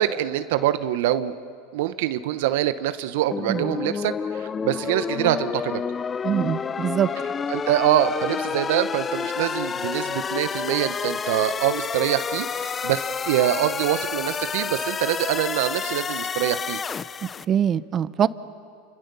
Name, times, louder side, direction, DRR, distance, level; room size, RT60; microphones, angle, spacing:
voice 1, 0.0-1.3 1.7-5.8 7.5-16.8, right 12 dB, 70° right, 12 dB, 0.9 m, -24 dB
sound 1, 3.3-17.4, left 6 dB, 25° left, 0.6 m, -29 dB
voice 2, 6.2-7.1 17.5-18.3, right 9 dB, 35° right, 16 dB, 0.8 m, -23 dB
30.0 x 26.5 x 6.9 m, 2.4 s
supercardioid pair, 115°, 0 cm